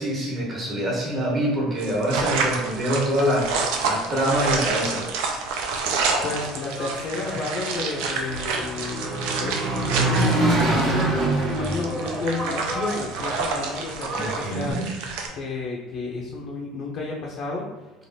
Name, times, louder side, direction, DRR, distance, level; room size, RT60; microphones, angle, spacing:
voice 1, 0.0-5.0 14.1-14.8, equal, 35° right, -4 dB, 1.1 m, -25 dB
sound 1, 1.8-15.3, right 4 dB, 80° right, 0.4 m, -29 dB
Engine, 6.0-14.7, right 2 dB, 60° right, 0.9 m, -27 dB
voice 2, 6.2-9.1 9.4-14.8 15.3-17.6, left 3 dB, 55° left, -2 dB, 0.5 m, -31 dB
3.2 x 2.4 x 2.7 m, 1.2 s
cardioid pair, 125°, 0 cm